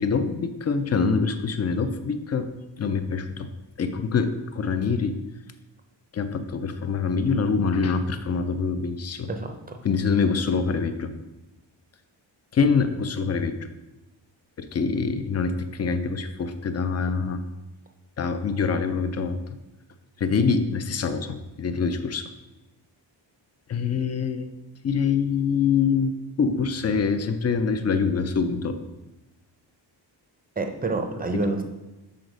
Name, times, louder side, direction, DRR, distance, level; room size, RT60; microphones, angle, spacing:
voice 1, 0.0-2.5 2.8-3.5 3.8-5.2 6.1-9.3 9.8-11.1 12.5-13.7 14.6-17.4 18.2-19.4 20.2-22.3 23.7-24.5 24.8-26.1 26.4-28.8, left 5 dB, 35° left, 10 dB, 0.4 m, -25 dB
voice 2, 9.3-9.8 30.6-31.6, right 2 dB, 20° right, 4 dB, 0.5 m, -28 dB
6.4 x 3.9 x 5.2 m, 1.0 s
wide cardioid pair, 150°, 45 cm